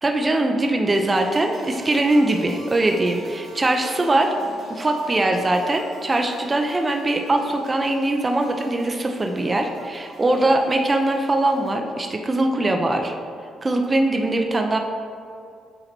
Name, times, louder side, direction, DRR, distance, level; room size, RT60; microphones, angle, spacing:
voice 1, 0.0-4.3 4.7-13.1 13.6-14.8, right 2 dB, 25° right, 3 dB, 0.5 m, -21 dB
sound 1, 1.1-11.7, right 2 dB, 55° right, 1.2 m, -42 dB
7.8 x 2.9 x 4.3 m, 2.4 s
cardioid pair, 90°, 0 cm